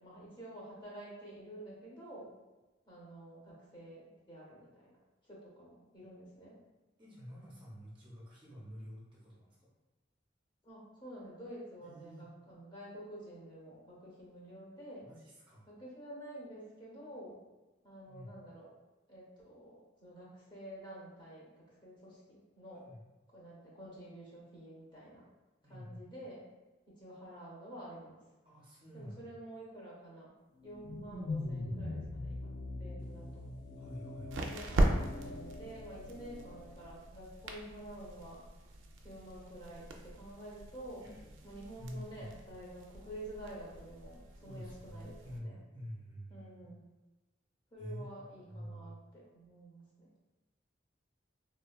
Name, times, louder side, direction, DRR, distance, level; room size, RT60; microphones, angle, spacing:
voice 1, 0.0-2.3 2.9-5.0 5.3-6.6 10.6-15.1 15.6-17.4 17.8-18.7 19.1-22.8 23.3-25.3 25.7-26.5 26.9-28.2 28.9-30.4 30.6-33.5 34.4-38.4 39.0-41.0 41.4-45.6 46.3-46.8 47.7-50.1, right 1 dB, 25° left, -5 dB, 0.8 m, -49 dB
voice 2, 7.0-9.7 11.8-12.3 15.0-15.6 18.1-18.3 22.8-23.0 25.6-26.1 28.4-29.3 33.8-34.6 41.0-41.3 41.8-42.3 44.4-46.8 47.8-48.1 48.5-49.0, equal, 25° right, -6 dB, 0.6 m, -48 dB
sound 1, 30.6-36.9, left 2 dB, 65° left, 0.3 m, -42 dB
sound 2, 33.0-45.4, right 1 dB, 80° right, 0.4 m, -39 dB
3.2 x 2.2 x 2.2 m, 1.1 s
head